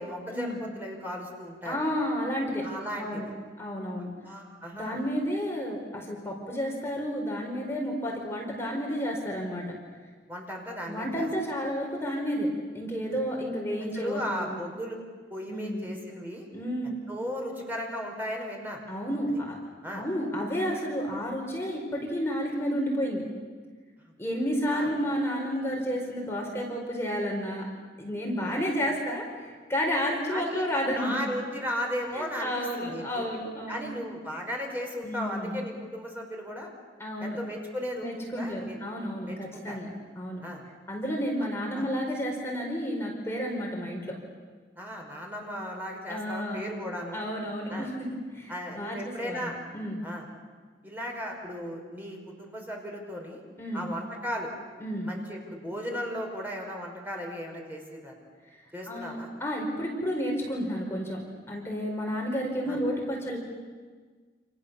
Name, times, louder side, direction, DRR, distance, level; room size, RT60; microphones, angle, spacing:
voice 1, 0.0-1.8 2.6-3.3 4.2-5.0 10.3-11.3 13.9-15.0 15.3-16.5 17.1-18.8 19.8-20.0 24.0-24.1 24.7-24.9 28.4-28.6 30.3-30.6 31.0-33.3 33.7-36.7 37.2-38.8 39.3-39.8 40.4-40.6 41.7-41.9 44.8-47.2 47.7-47.9 48.5-49.6 50.0-50.3 50.8-53.4 53.7-54.5 55.0-58.1 58.7-59.3 62.7-62.8, equal, 10° right, 0 dB, 5.5 m, -36 dB
voice 2, 1.6-2.7 3.0-3.3 3.6-4.1 4.7-9.6 10.9-12.5 12.7-14.6 15.5-15.9 16.5-17.0 18.9-19.6 19.9-23.2 24.2-27.6 28.0-31.2 32.1-33.9 35.0-35.6 37.0-37.4 38.0-39.9 40.1-40.4 40.9-44.2 46.1-46.8 47.1-50.0 53.6-53.9 54.8-55.1 58.9-63.4, equal, 15° left, -1 dB, 4.9 m, -31 dB
29.5 x 28.5 x 7.0 m, 1.5 s
head